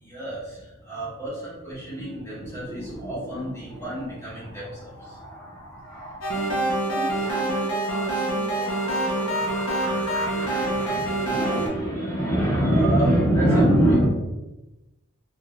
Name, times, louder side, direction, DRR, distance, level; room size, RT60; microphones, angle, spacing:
voice 1, 0.0-6.4 7.3-7.4 8.0-8.3 8.5-14.1, right 1 dB, 10° left, -8 dB, 0.9 m, -26 dB
voice 2, 6.0-10.4, right 1 dB, 60° right, -2 dB, 0.7 m, -39 dB
sound 1, 6.2-11.7, right 1 dB, 65° left, 0.6 m, -26 dB
2.5 x 2.3 x 3.1 m, 1.0 s
head